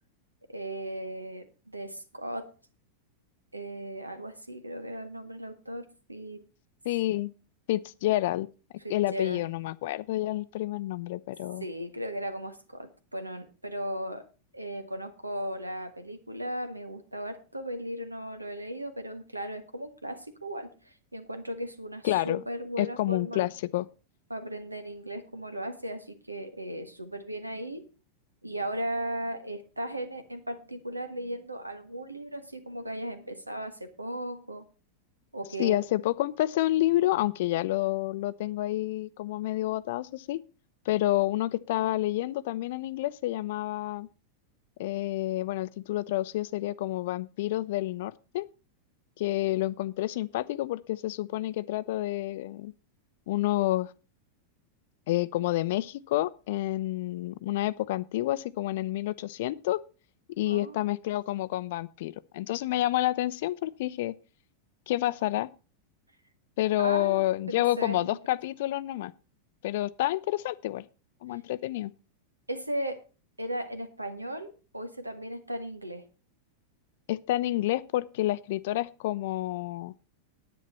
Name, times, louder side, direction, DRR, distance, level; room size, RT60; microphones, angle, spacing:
voice 1, 0.5-2.5 3.5-6.4 8.8-9.4 11.6-14.3 14.5-23.5 24.3-27.8 28.4-34.7 35.3-35.8 60.4-60.8 66.8-68.2 72.5-73.0 73.4-76.0, right 1 dB, 85° right, 1.4 m, -37 dB
voice 2, 6.8-7.3 7.7-8.5 8.9-11.6 22.0-22.4 22.8-23.9 35.6-40.4 40.9-44.1 44.8-48.5 49.2-52.7 53.3-53.9 55.1-59.8 60.4-64.1 64.9-65.5 66.6-69.1 69.6-70.8 71.2-71.9 77.1-79.9, left 15 dB, 55° left, 0.5 m, -29 dB
10.0 x 9.3 x 4.4 m
figure-of-eight pair, 90°, 0 cm